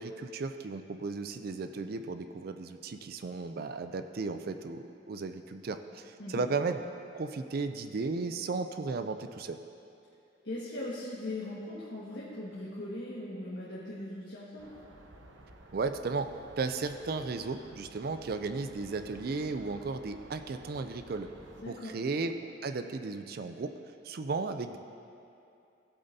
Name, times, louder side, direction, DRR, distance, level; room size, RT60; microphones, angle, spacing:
voice 1, 0.0-6.8 7.1-9.6 15.7-21.3 21.7-23.7 24.0-24.8, right 4 dB, 50° right, 8 dB, 0.4 m, -35 dB
voice 2, 10.4-14.7 21.6-22.0, left 1 dB, 60° left, -8 dB, 1.6 m, -39 dB
sound 1, 14.6-21.6, right 2 dB, 70° right, 0.8 m, -53 dB
16.5 x 7.9 x 2.7 m, 2.6 s
head